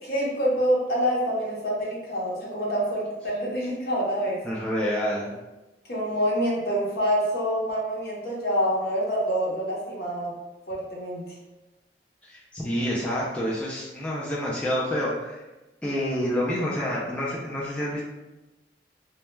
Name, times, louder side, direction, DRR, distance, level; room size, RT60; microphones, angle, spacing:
voice 1, 0.0-4.4 5.9-10.3 10.7-11.2, equal, 60° left, -4 dB, 0.7 m, -26 dB
voice 2, 4.4-5.3 12.2-15.4 15.8-18.0, equal, 5° left, -6 dB, 0.3 m, -28 dB
2.1 x 2.1 x 3.0 m, 1.1 s
head